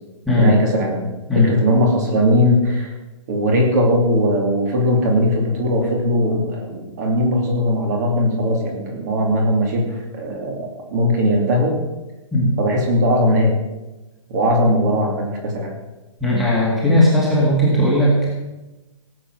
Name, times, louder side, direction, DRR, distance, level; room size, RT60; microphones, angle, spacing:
voice 1, 0.4-2.9 3.3-11.8 12.6-13.6 14.3-15.7, equal, 30° right, 1 dB, 2.7 m, -19 dB
voice 2, 16.2-18.3, left 1 dB, ahead, -6 dB, 2.2 m, -16 dB
17.5 x 7.9 x 6.4 m, 1.1 s
hypercardioid pair, 175°, 17 cm